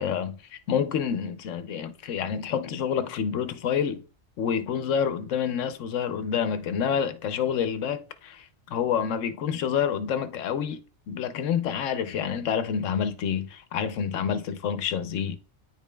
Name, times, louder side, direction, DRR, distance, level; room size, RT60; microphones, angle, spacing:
voice 1, 0.0-4.0 4.4-10.8 11.1-15.4, left 7 dB, 85° left, 1.0 m, -28 dB
9.6 x 5.0 x 2.2 m
omnidirectional pair, 1.3 m